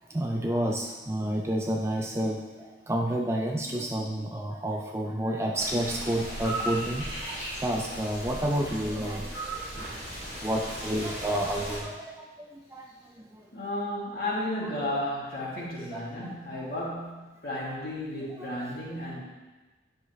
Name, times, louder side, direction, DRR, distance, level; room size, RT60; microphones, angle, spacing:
voice 1, 0.1-10.0 10.4-12.3 12.5-12.9 13.3-13.4 15.9-16.7 18.4-18.7, right 1 dB, 15° right, 0 dB, 0.5 m, -30 dB
sound 1, 5.6-11.8, right 1 dB, 85° left, 2.5 m, -36 dB
voice 2, 13.5-19.2, left 1 dB, 55° left, -6 dB, 2.3 m, -33 dB
10.0 x 5.7 x 3.2 m, 1.3 s
head